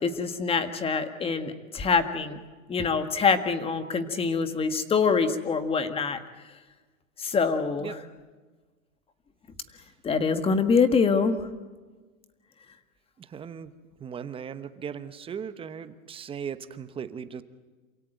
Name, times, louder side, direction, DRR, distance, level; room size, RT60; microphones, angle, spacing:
voice 1, 0.0-2.4 2.7-6.2 7.2-8.0 10.0-11.4, left 5 dB, 15° left, 9 dB, 1.7 m, -25 dB
voice 2, 13.2-13.7 14.0-17.4, right 7 dB, 15° right, 12 dB, 1.0 m, -38 dB
28.0 x 17.0 x 9.1 m, 1.3 s
supercardioid pair, 145°, 41 cm